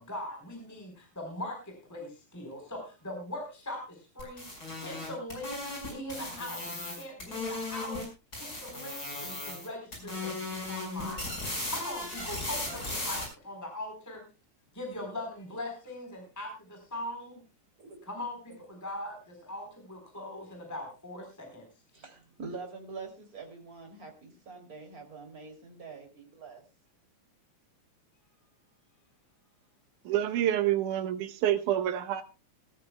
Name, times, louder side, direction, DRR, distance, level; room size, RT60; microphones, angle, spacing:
voice 1, 0.0-4.5 4.7-5.5 5.9-8.0 8.4-14.2 14.7-17.4 18.1-21.7, left 1 dB, 5° left, 2 dB, 4.0 m, -41 dB
sound 1, 4.2-8.1 8.3-9.7 9.9-13.2, left 2 dB, 30° left, 5.9 m, -37 dB
voice 2, 21.9-26.6, right 4 dB, 30° right, 3 dB, 3.3 m, -45 dB
voice 3, 30.1-32.2, right 11 dB, 90° right, 9 dB, 2.6 m, -27 dB
20.5 x 13.5 x 2.3 m, 0.29 s
omnidirectional pair, 3.4 m